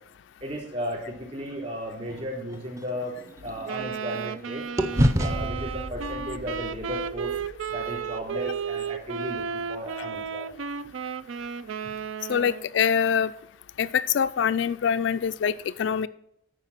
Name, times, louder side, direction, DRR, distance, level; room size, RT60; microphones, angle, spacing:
voice 1, 0.4-3.1 3.4-4.6 5.2-7.4 7.7-10.5, equal, 35° right, -1 dB, 3.6 m, -35 dB
sound 1, 2.1-4.4 4.8-9.0, equal, 15° right, 0.6 m, -30 dB
Wind instrument woodwind instrument, 3.7-12.7, right 6 dB, 80° right, 0.4 m, -33 dB
voice 2, 12.3-13.3 13.8-16.1, left 7 dB, 60° left, 12 dB, 0.3 m, -24 dB
10.5 x 4.7 x 7.4 m, 0.76 s
head